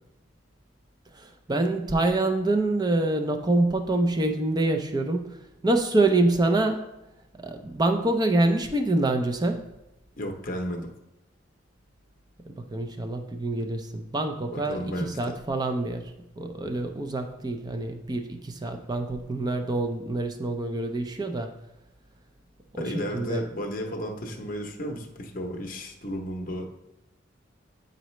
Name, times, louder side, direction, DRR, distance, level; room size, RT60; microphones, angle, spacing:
voice 1, 1.1-6.9 7.4-9.7 12.6-21.6 22.7-23.4, right 2 dB, 20° right, 6 dB, 0.5 m, -26 dB
voice 2, 10.2-10.9 14.5-15.1 22.8-26.7, equal, 45° left, 3 dB, 0.8 m, -33 dB
9.0 x 3.9 x 3.1 m, 0.91 s
head